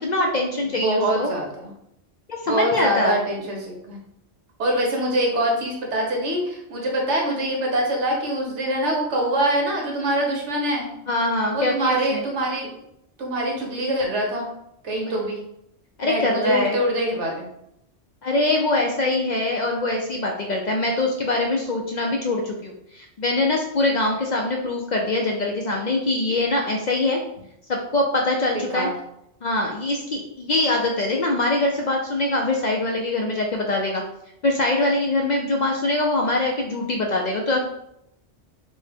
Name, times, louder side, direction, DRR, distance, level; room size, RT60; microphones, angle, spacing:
voice 1, 0.0-1.3 2.3-3.2 11.1-12.2 16.0-16.8 18.2-27.2 27.7-28.9 29.4-34.0 34.4-37.6, left 2 dB, 60° left, 0 dB, 0.5 m, -23 dB
voice 2, 0.6-1.7 2.5-4.0 4.6-10.9 11.5-12.8 13.2-14.5 14.8-15.4 16.0-17.5 28.5-28.9, right 1 dB, 90° right, 0 dB, 1.3 m, -24 dB
4.4 x 2.1 x 3.4 m, 0.78 s
omnidirectional pair, 1.1 m